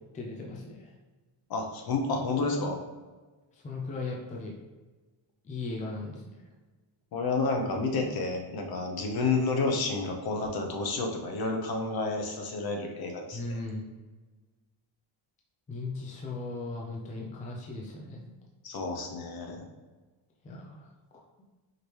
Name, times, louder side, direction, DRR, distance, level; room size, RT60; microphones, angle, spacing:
voice 1, 0.1-0.9 3.6-4.5 5.4-6.4 13.3-13.9 15.7-18.4 20.4-20.8, left 3 dB, 15° left, -1 dB, 0.4 m, -37 dB
voice 2, 1.5-2.8 7.1-13.4 18.6-19.7, left 3 dB, 50° left, 3 dB, 0.8 m, -30 dB
5.0 x 3.2 x 2.9 m, 1.3 s
cardioid pair, 170°, 46 cm